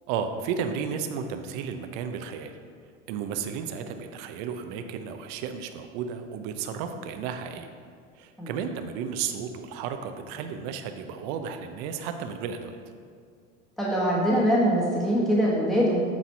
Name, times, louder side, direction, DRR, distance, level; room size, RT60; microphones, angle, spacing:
voice 1, 0.1-2.5 3.1-7.7 8.2-12.8, right 7 dB, 55° right, 7 dB, 0.8 m, -33 dB
voice 2, 13.8-16.0, equal, ahead, -6 dB, 1.4 m, -23 dB
8.5 x 4.1 x 4.5 m, 2.1 s
hypercardioid pair, 90°, 38 cm